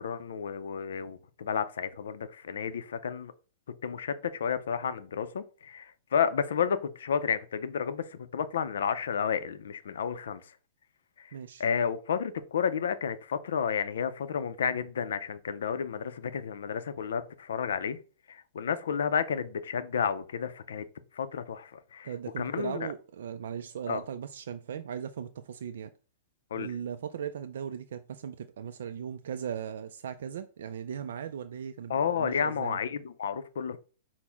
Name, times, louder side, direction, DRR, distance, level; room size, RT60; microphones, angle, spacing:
voice 1, 0.0-3.3 3.8-8.1 8.3-10.4 11.2-11.3 11.6-18.0 18.3-20.9 21.2-22.1 22.4-22.9 23.9-24.0 26.5-26.7 31.9-33.8, left 7 dB, 85° left, 0.4 m, -31 dB
voice 2, 11.3-11.6 22.0-25.9 26.5-32.8, right 8 dB, 75° right, 0.3 m, -38 dB
6.0 x 2.0 x 3.5 m
hypercardioid pair, 155°, 0 cm